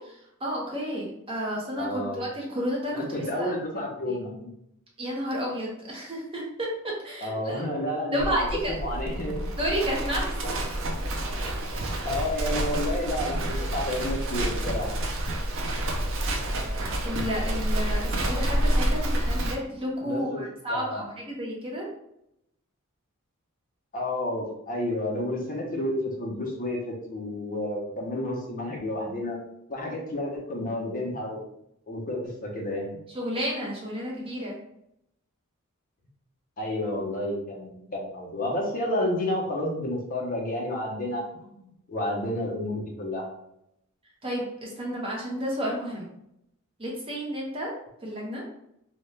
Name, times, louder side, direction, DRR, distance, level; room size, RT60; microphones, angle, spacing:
voice 1, 0.0-3.5 4.1-4.2 5.0-7.6 8.1-8.8 9.6-10.7 11.8-12.1 16.4-21.9 33.1-34.6 44.2-46.1 46.8-47.7 48.0-48.4, equal, 25° right, -2 dB, 0.6 m, -32 dB
voice 2, 1.8-2.2 2.9-4.5 7.2-8.4 8.8-9.5 12.0-15.0 20.0-20.4 20.7-21.0 23.9-29.4 29.7-31.4 31.9-33.0 36.6-43.3, left 1 dB, 40° left, -2 dB, 0.6 m, -30 dB
Livestock farm animals working animals, 8.2-19.5, right 1 dB, 60° right, 0.5 m, -28 dB
2.8 x 2.1 x 3.2 m, 0.79 s
head